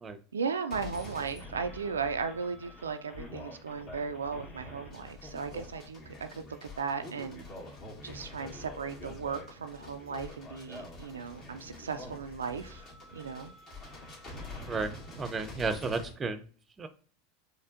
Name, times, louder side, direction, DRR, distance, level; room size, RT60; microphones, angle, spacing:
voice 1, 0.3-6.4 6.8-7.4 8.0-12.8 13.1-13.5, right 5 dB, 80° right, 0.3 m, -36 dB
sound 1, 0.7-16.1, left 2 dB, 40° left, 1.9 m, -46 dB
voice 2, 14.7-16.5 16.8-16.9, right 4 dB, 25° right, 0.5 m, -33 dB
4.2 x 3.2 x 2.5 m
figure-of-eight pair, 85°, 0 cm